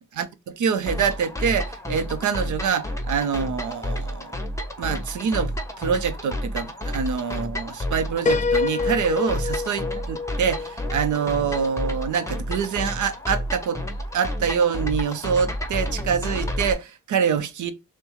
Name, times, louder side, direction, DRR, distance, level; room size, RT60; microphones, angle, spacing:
voice 1, 0.1-4.3 4.8-5.5 5.8-13.8 14.1-17.7, right 6 dB, 80° right, 0.7 m, -25 dB
sound 1, 0.9-16.7, equal, 10° left, 0.9 m, -30 dB
Piano, 8.3-12.0, left 4 dB, 25° left, 0.4 m, -27 dB
6.2 x 2.2 x 3.1 m
cardioid pair, 60°, 30 cm